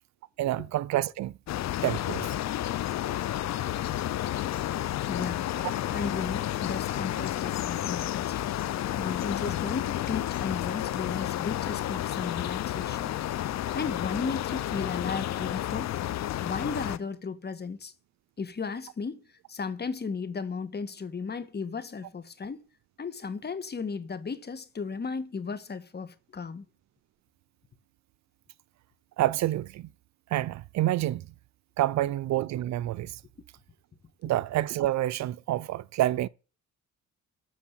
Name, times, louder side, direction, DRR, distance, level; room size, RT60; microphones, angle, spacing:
voice 1, 0.4-1.3 1.8-2.3 29.2-29.9 30.3-31.3 31.8-33.2 34.2-36.3, right 14 dB, 65° right, 0.4 m, -28 dB
sound 1, 1.5-17.0, left 13 dB, 65° left, 0.7 m, -31 dB
voice 2, 5.0-5.5 5.9-8.5 9.0-13.2 13.7-15.9 16.4-17.9 18.4-19.2 19.5-22.6 23.0-26.6, left 5 dB, 35° left, 1.5 m, -35 dB
13.0 x 4.8 x 7.3 m
cardioid pair, 90°, 30 cm